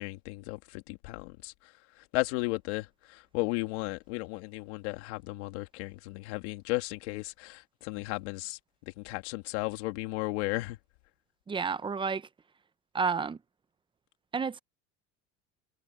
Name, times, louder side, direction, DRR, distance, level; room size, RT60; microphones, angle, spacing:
voice 1, 0.0-1.5 2.1-8.6 9.0-10.8, left 22 dB, 85° left, 2.7 m, -34 dB
voice 2, 11.5-12.3 12.9-13.4 14.3-14.6, right 5 dB, 15° right, 0.6 m, -30 dB
cardioid pair, 130°, 33 cm